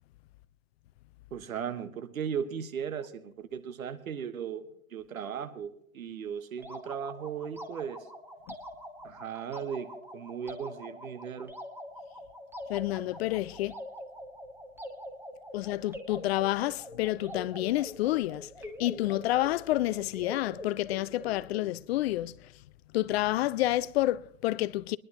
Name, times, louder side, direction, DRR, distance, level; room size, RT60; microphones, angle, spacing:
voice 1, 1.3-4.6 4.9-8.1 9.0-11.5, right 7 dB, 85° right, 1.4 m, -37 dB
sound 1, 6.6-21.8, left 1 dB, 5° right, 1.3 m, -44 dB
voice 2, 12.7-13.7 15.5-18.5 18.8-22.4 22.9-25.0, left 16 dB, 50° left, 0.5 m, -29 dB
23.5 x 10.5 x 2.9 m
hypercardioid pair, 115°, 41 cm